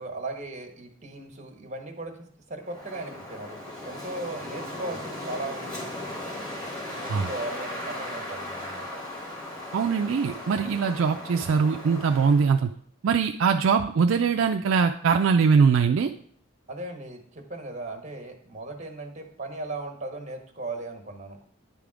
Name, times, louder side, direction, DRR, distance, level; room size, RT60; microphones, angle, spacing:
voice 1, 0.0-5.9 6.9-8.9 16.7-21.4, right 2 dB, 35° right, 3 dB, 1.2 m, -37 dB
Wind, 2.6-12.5, left 1 dB, 20° left, 1.6 m, -37 dB
voice 2, 9.7-12.7 13.0-16.1, right 5 dB, 65° right, 5 dB, 0.4 m, -22 dB
9.6 x 3.5 x 4.9 m, 0.62 s
head